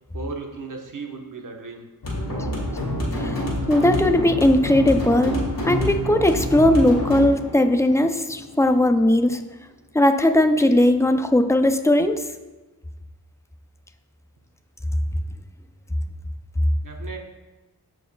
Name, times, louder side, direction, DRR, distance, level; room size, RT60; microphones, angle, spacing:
voice 1, 0.1-1.9 16.8-17.2, right 4 dB, 55° right, 1 dB, 1.1 m, -35 dB
sound 1, 2.0-9.0, equal, 60° left, 2.3 m, -27 dB
voice 2, 3.7-9.4 9.9-12.2, left 1 dB, 10° left, 8 dB, 0.4 m, -18 dB
14.0 x 4.6 x 2.3 m, 1.2 s
wide cardioid pair, 105°, 39 cm